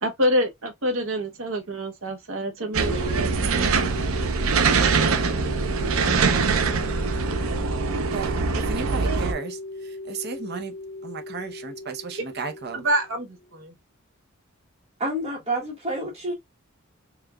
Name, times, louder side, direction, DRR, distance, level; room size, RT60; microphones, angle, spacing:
voice 1, 0.0-3.3 12.7-13.7, equal, 70° right, 1.0 m, -26 dB
sound 1, 2.7-9.3, right 4 dB, 90° right, 0.6 m, -23 dB
sound 2, 2.8-13.4, left 2 dB, 70° left, 0.7 m, -37 dB
voice 2, 8.1-10.7 11.0-12.8, right 4 dB, 50° right, 0.7 m, -34 dB
voice 3, 15.0-16.3, right 1 dB, 30° right, 1.1 m, -28 dB
4.8 x 2.4 x 2.2 m
head